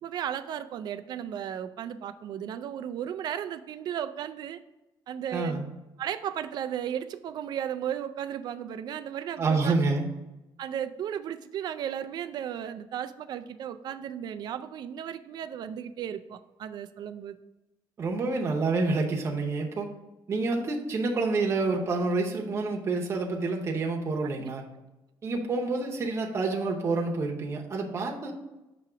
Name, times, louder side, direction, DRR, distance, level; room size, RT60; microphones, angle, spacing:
voice 1, 0.0-4.6 5.1-5.6 6.0-9.7 10.6-17.4 24.4-24.5, right 9 dB, 50° right, 10 dB, 0.3 m, -35 dB
voice 2, 5.3-5.6 9.4-10.0 18.0-19.9 20.3-24.6 25.2-28.3, right 3 dB, 30° right, 0 dB, 0.8 m, -28 dB
6.0 x 2.9 x 5.6 m, 1.0 s
cardioid pair, 160°, 9 cm